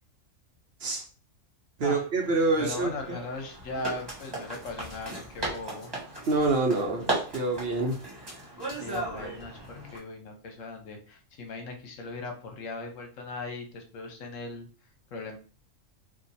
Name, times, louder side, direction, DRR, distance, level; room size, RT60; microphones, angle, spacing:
voice 1, 1.8-2.9 6.3-8.0, right 3 dB, 55° right, 1 dB, 0.9 m, -26 dB
sound 1, 2.2-10.0, right 2 dB, 20° right, 1.4 m, -37 dB
voice 2, 2.6-5.9 8.7-14.7 15.1-15.4, left 3 dB, 75° left, 4 dB, 1.1 m, -38 dB
2.9 x 2.5 x 4.0 m, 0.37 s
omnidirectional pair, 1.4 m